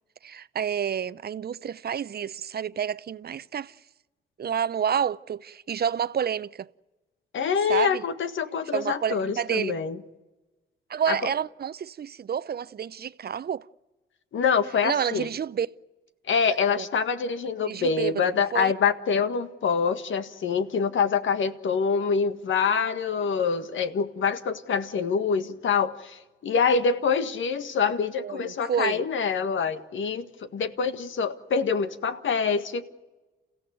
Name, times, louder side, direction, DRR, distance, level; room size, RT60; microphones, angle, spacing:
voice 1, 0.2-3.8 4.4-6.7 7.7-8.0 8.7-9.8 10.9-13.7 14.8-15.7 16.7-16.9 17.6-18.7 28.2-29.0, right 8 dB, 50° right, 0.7 m, -29 dB
voice 2, 7.3-10.0 11.1-11.3 14.3-15.3 16.3-30.3 30.5-32.8, left 6 dB, 70° left, 1.7 m, -25 dB
28.5 x 15.5 x 9.3 m
supercardioid pair, 55°, 21 cm